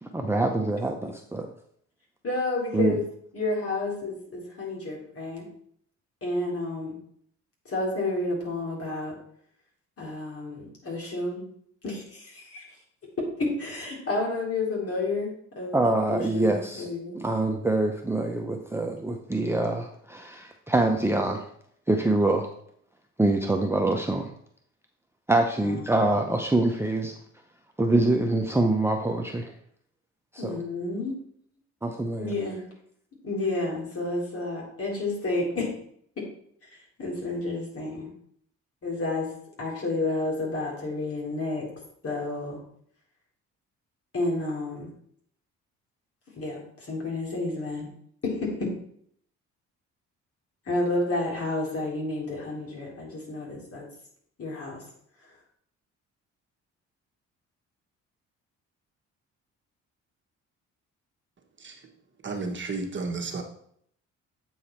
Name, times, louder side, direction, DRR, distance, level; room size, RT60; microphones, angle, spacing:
voice 1, 0.0-1.5 2.7-3.0 15.7-16.9 17.1-21.5 21.9-22.5 23.2-24.3 25.3-27.2 27.8-29.5 30.3-30.5 31.8-32.3, right 2 dB, 10° right, 0.7 m, -25 dB
voice 2, 2.2-3.0 3.3-5.5 6.2-6.9 7.6-9.1 10.0-11.4 11.8-12.7 13.4-15.3 15.5-15.8 16.1-17.1 25.6-25.9 30.4-31.1 32.2-32.6 33.2-35.7 36.7-38.1 38.8-39.3 39.6-41.7 42.0-42.6 44.1-44.9 46.4-47.9 48.2-48.5 50.6-53.8 54.4-54.8 55.2-55.3, left 2 dB, 50° left, 3.4 m, -30 dB
voice 3, 62.2-63.4, right 3 dB, 40° right, 1.3 m, -32 dB
8.2 x 4.8 x 4.4 m
cardioid pair, 90°, 30 cm